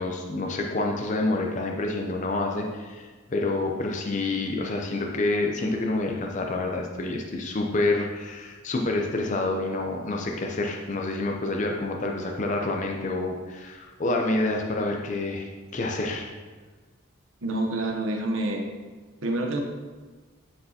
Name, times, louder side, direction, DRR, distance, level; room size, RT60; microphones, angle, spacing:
voice 1, 0.0-16.3, left 2 dB, 35° left, 1 dB, 0.5 m, -28 dB
voice 2, 17.4-18.6 19.2-19.6, right 1 dB, 65° right, 3 dB, 0.9 m, -27 dB
9.5 x 4.8 x 2.8 m, 1.4 s
head